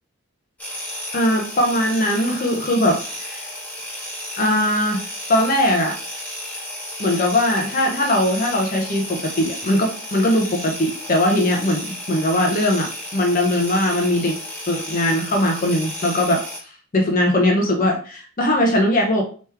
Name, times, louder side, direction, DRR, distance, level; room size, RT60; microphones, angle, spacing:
sound 1, 0.6-16.6, left 1 dB, 5° left, 1.3 m, -33 dB
voice 1, 1.1-3.4 4.4-5.0 5.3-6.0 7.0-14.4 14.7-16.4 16.9-19.2, left 1 dB, 40° left, 1 dB, 0.6 m, -20 dB
3.5 x 3.0 x 4.5 m, 0.40 s
head